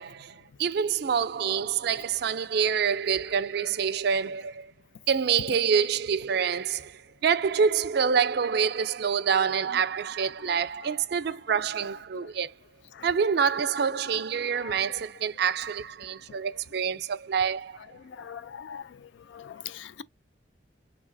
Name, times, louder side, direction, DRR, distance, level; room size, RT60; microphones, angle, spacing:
voice 1, 0.0-4.7 5.1-12.5 13.0-17.8, right 6 dB, 60° right, 0.4 m, -26 dB
voice 2, 18.1-18.8 19.3-20.0, left 8 dB, 75° left, 0.4 m, -41 dB
3.2 x 3.1 x 3.8 m
head